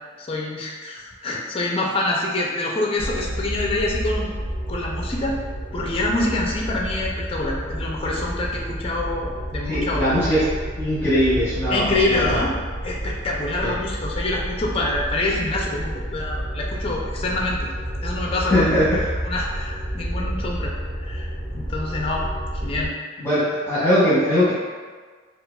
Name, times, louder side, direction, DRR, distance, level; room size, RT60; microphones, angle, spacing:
voice 1, 0.2-4.3 4.7-5.4 5.7-10.1 11.7-12.5 12.8-17.7 18.0-18.8 19.3-22.3 22.5-22.9, left 2 dB, 30° left, -2 dB, 0.4 m, -26 dB
sound 1, 3.0-22.9, equal, 90° right, 1.0 m, -30 dB
voice 2, 9.7-10.4 10.8-12.4 13.6-13.7 18.5-19.1 23.2-24.5, equal, 10° left, -12 dB, 0.9 m, -20 dB
4.7 x 2.4 x 2.3 m, 1.5 s
head